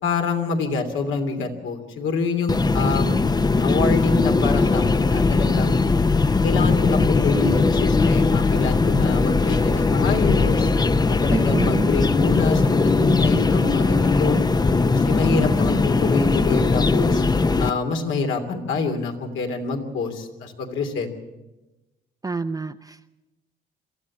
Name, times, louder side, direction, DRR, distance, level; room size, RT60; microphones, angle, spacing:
voice 1, 0.0-3.2 3.6-5.8 6.4-10.7 11.2-14.4 14.9-17.2 17.6-21.1, left 4 dB, 80° left, 4 dB, 3.0 m, -26 dB
sound 1, 2.5-17.7, left 3 dB, 20° left, 0.7 m, -19 dB
voice 2, 11.3-11.9 22.2-23.1, right 3 dB, 20° right, 6 dB, 0.6 m, -27 dB
23.0 x 14.0 x 8.5 m, 1.1 s
cardioid pair, 90°, 20 cm